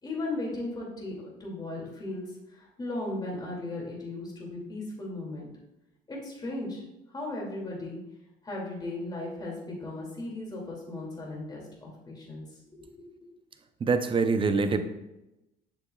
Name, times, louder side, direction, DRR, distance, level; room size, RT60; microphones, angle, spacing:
voice 1, 0.0-2.2 2.5-5.5 6.1-6.8 7.1-8.0 8.4-12.4 12.7-13.3, left 2 dB, 25° left, -3 dB, 2.4 m, -36 dB
voice 2, 13.8-14.8, right 4 dB, 30° right, 9 dB, 0.6 m, -24 dB
7.0 x 6.8 x 2.3 m, 0.93 s
cardioid pair, 110°, 17 cm